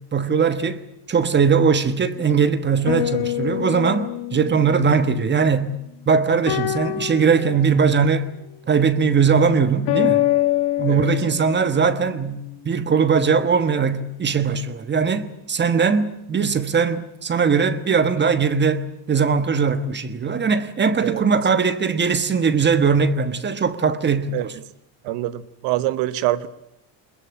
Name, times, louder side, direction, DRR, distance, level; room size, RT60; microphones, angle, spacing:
voice 1, 0.1-0.8 1.1-5.7 6.1-8.3 8.7-10.3 10.8-24.5, right 5 dB, 25° right, 1.3 m, -20 dB
sound 1, 2.9-5.2 6.5-7.8 9.9-12.1, left 15 dB, 65° left, 1.3 m, -25 dB
voice 2, 25.0-26.5, right 15 dB, 85° right, 1.2 m, -24 dB
21.5 x 21.5 x 8.7 m
cardioid pair, 135°, 40 cm